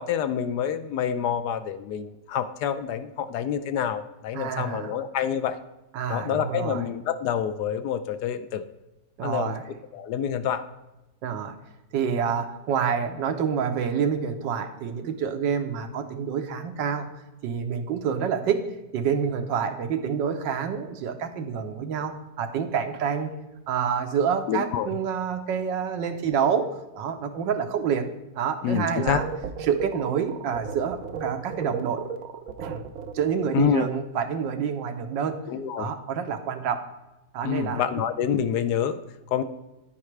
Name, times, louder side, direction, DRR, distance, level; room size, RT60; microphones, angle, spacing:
voice 1, 0.0-5.6 6.1-8.7 9.2-9.5 9.9-10.6 24.5-25.0 28.6-29.2 33.5-33.9 35.5-35.9 37.4-39.0 39.3-39.4, left 8 dB, 75° left, 11 dB, 1.0 m, -27 dB
voice 2, 4.3-5.0 5.9-6.8 9.2-9.7 11.2-11.6 11.9-17.1 17.4-18.7 18.9-23.3 23.7-26.7 26.9-28.1 28.4-29.2 29.6-32.0 32.6-32.8 33.1-35.4 35.8-36.8 37.3-37.8, right 7 dB, 85° right, 7 dB, 1.5 m, -27 dB
sound 1, 29.1-33.5, right 6 dB, 65° right, 0.9 m, -34 dB
10.0 x 9.5 x 3.2 m, 1.0 s
omnidirectional pair, 1.9 m